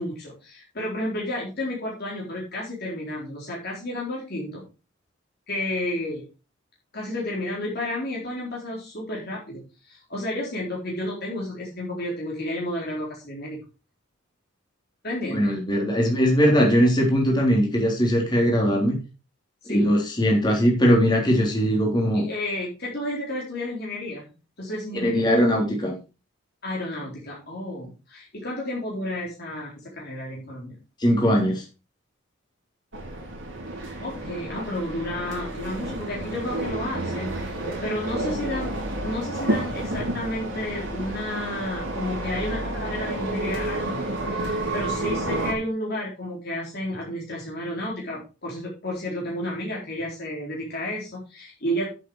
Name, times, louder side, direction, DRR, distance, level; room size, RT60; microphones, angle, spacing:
voice 1, 0.0-4.6 5.5-6.3 6.9-13.6 15.0-15.5 19.6-19.9 22.1-24.2 24.6-25.3 26.6-30.8 34.0-38.8 39.0-51.9, left 1 dB, 50° left, -4 dB, 4.0 m, -31 dB
voice 2, 15.3-18.9 19.7-22.2 24.9-26.0 31.0-31.6, equal, 20° left, -1 dB, 3.6 m, -20 dB
sound 1, 32.9-45.5, right 2 dB, 65° right, 4.2 m, -30 dB
10.0 x 7.9 x 4.8 m, 0.31 s
head